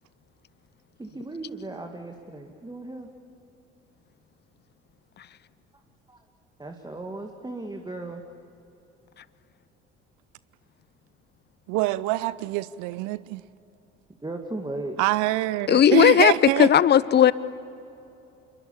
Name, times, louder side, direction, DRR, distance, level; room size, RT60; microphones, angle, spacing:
voice 1, 1.0-3.1 6.1-6.2 6.6-8.2 14.2-15.0 15.7-15.8, right 2 dB, 10° right, 3 dB, 2.1 m, -36 dB
voice 2, 11.7-13.4 15.0-16.7, right 18 dB, 60° right, 19 dB, 0.6 m, -25 dB
voice 3, 15.7-16.3 16.6-17.3, left 10 dB, 30° left, 19 dB, 0.7 m, -16 dB
28.0 x 23.0 x 7.1 m, 2.8 s
figure-of-eight pair, 60°, 35 cm